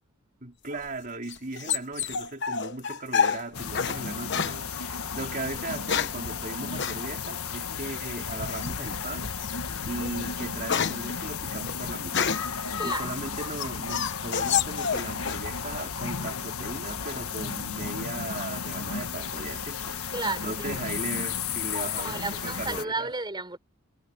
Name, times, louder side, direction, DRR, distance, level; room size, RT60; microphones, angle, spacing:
voice 1, 0.4-12.3 12.8-20.1 20.4-23.1, right 2 dB, 40° right, 4.0 m, -38 dB
sound 1, 0.7-4.0 4.3-4.6 5.5-6.3 6.8-7.0 8.5-8.9 9.4-9.6 10.0-12.6 13.1-15.5 15.7-16.4, left 7 dB, 55° left, 1.1 m, -29 dB
sound 2, 3.5-22.8, left 6 dB, 80° left, 1.6 m, -34 dB
voice 2, 20.1-20.8 21.9-23.6, right 3 dB, 20° right, 4.8 m, -33 dB
head